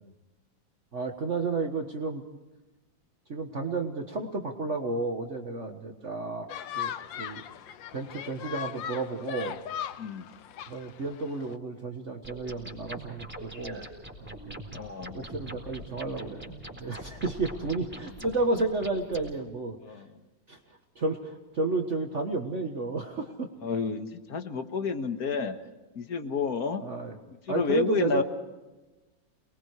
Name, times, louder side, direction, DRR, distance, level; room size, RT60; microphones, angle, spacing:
voice 1, 0.9-2.2 3.3-6.5 6.7-7.4 7.9-9.6 10.7-13.9 14.2-14.6 15.1-19.8 20.5-20.6 21.0-23.5 26.8-27.1 27.5-28.2, right 3 dB, 40° right, 3 dB, 1.7 m, -32 dB
sound 1, 6.5-11.6, left 10 dB, 80° left, 1.6 m, -39 dB
sound 2, 12.2-19.3, equal, 5° right, 4.1 m, -43 dB
voice 2, 14.7-15.2 19.8-20.1 23.6-25.6 26.0-26.8 27.5-28.2, left 5 dB, 55° left, 7 dB, 2.0 m, -30 dB
28.5 x 21.0 x 4.8 m, 1.1 s
omnidirectional pair, 2.0 m